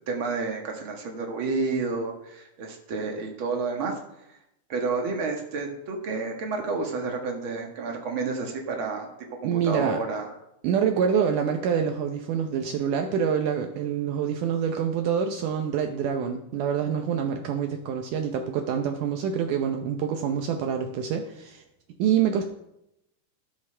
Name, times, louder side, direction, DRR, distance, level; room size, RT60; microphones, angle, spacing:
voice 1, 0.0-3.9 4.3-4.4 4.7-9.1 9.4-10.3, right 4 dB, 65° right, 2 dB, 1.3 m, -30 dB
voice 2, 9.4-10.0 10.6-21.6 22.0-22.4, right 7 dB, 90° right, 4 dB, 1.8 m, -26 dB
13.0 x 11.0 x 3.3 m, 0.82 s
omnidirectional pair, 4.7 m